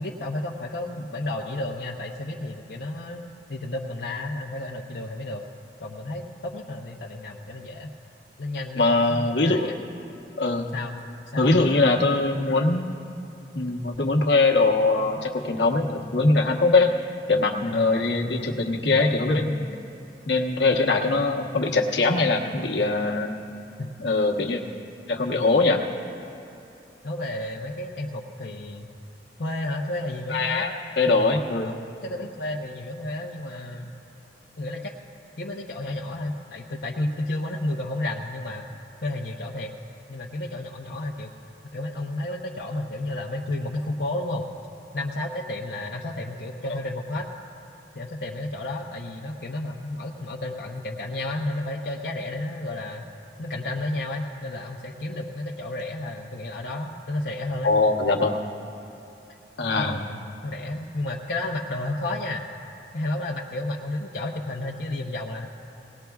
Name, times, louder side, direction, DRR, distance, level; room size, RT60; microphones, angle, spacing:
voice 1, 0.0-3.2 3.5-5.4 5.8-7.9 8.4-9.8 10.7-11.0 11.3-11.6 17.7-18.1 23.8-23.9 27.0-28.9 29.4-30.7 31.6-33.9 34.6-34.9 35.4-38.7 39.0-39.7 40.1-41.3 41.7-44.5 44.9-47.3 47.9-53.1 53.4-57.7 59.7-62.4 62.9-65.5, left 1 dB, 60° left, -3 dB, 0.8 m, -32 dB
voice 2, 8.7-9.7 10.4-10.7 11.3-12.8 13.5-16.9 17.3-19.7 20.3-23.3 24.0-24.6 25.1-25.8 30.3-30.7 31.0-31.8 57.6-58.4 59.6-60.0, left 3 dB, 80° left, 1 dB, 1.1 m, -22 dB
19.0 x 18.5 x 2.3 m, 2.8 s
head